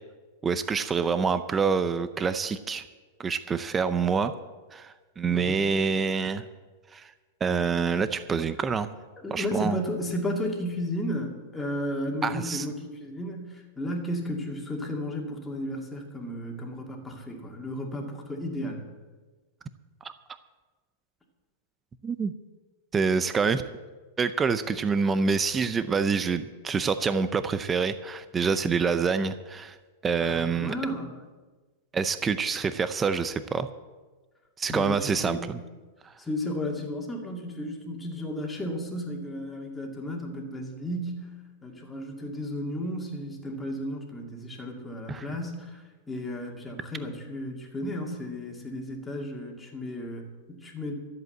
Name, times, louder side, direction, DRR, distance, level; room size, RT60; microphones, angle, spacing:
voice 1, 0.4-2.8 3.2-4.3 4.7-6.4 6.9-7.1 7.4-8.9 9.3-9.8 12.2-12.6 20.0-20.1 22.0-22.3 22.9-23.6 24.2-29.8 30.0-30.7 31.9-33.7 34.6-35.6 36.0-36.1 45.1-45.3, right 5 dB, 15° right, 12 dB, 0.6 m, -26 dB
voice 2, 5.3-5.7 9.2-18.9 30.2-31.1 34.7-35.5 36.2-41.3 41.6-51.0, left 1 dB, 10° left, 0 dB, 2.5 m, -34 dB
13.5 x 8.0 x 7.9 m, 1.3 s
supercardioid pair, 140°, 0 cm